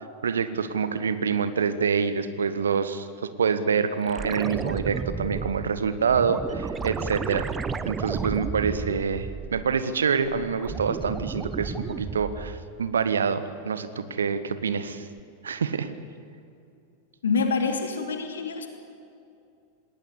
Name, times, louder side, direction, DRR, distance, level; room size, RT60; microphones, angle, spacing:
voice 1, 0.2-7.5 7.8-15.0 15.4-15.9, right 6 dB, 70° right, 12 dB, 1.3 m, -26 dB
sound 1, 4.1-9.9 10.2-12.8 15.2-15.3, right 5 dB, 20° right, 0.9 m, -33 dB
voice 2, 17.2-18.7, left 4 dB, 65° left, 5 dB, 2.9 m, -26 dB
19.5 x 19.0 x 9.9 m, 2.5 s
figure-of-eight pair, 90°, 0 cm